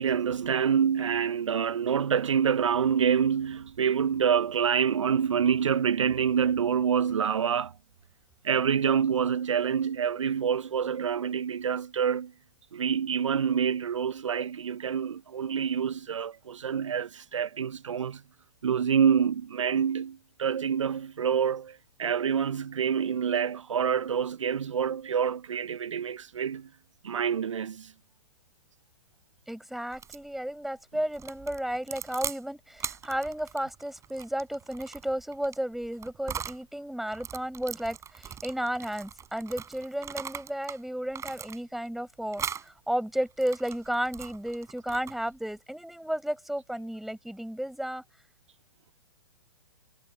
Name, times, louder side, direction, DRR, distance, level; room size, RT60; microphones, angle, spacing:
voice 1, 0.0-7.7 8.4-12.3 12.7-18.2 18.6-26.7 27.0-27.9, right 7 dB, 75° right, 0.8 m, -27 dB
voice 2, 29.5-48.0, right 1 dB, ahead, 5.5 m, -33 dB
sound 1, 29.9-30.3 31.1-32.4 32.8-36.6 37.1-40.8 41.1-41.9 42.3-42.7 43.2-45.4, right 8 dB, 20° right, 6.4 m, -40 dB
figure-of-eight pair, 115°, 16 cm